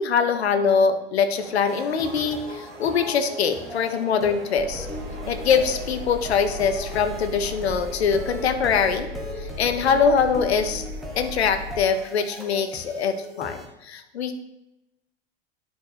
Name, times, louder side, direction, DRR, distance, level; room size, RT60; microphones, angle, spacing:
voice 1, 0.0-4.9 5.3-9.1 9.4-10.8 11.2-14.3, left 6 dB, 75° left, 9 dB, 0.8 m, -23 dB
sound 1, 1.3-8.4, right 3 dB, 80° right, 1.5 m, -43 dB
sound 2, 1.7-13.7, equal, ahead, 1.3 m, -39 dB
Engine, 4.6-11.8, left 1 dB, 30° right, 1.1 m, -36 dB
10.0 x 4.7 x 2.9 m, 0.91 s
figure-of-eight pair, 85°, 33 cm